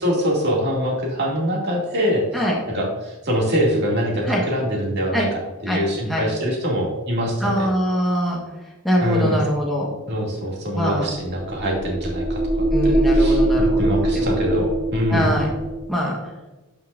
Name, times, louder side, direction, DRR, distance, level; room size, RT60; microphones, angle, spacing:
voice 1, 0.0-2.4 2.7-7.7 9.0-9.4 10.1-15.3, equal, 50° right, -2 dB, 2.4 m, -24 dB
voice 2, 7.4-8.4 8.8-9.9 10.7-11.1 12.7-14.4 15.1-15.5 15.9-16.2, equal, ahead, -4 dB, 1.3 m, -23 dB
sound 1, 11.2-15.9, right 1 dB, 30° right, 0.9 m, -21 dB
12.0 x 5.6 x 2.6 m, 1.1 s
head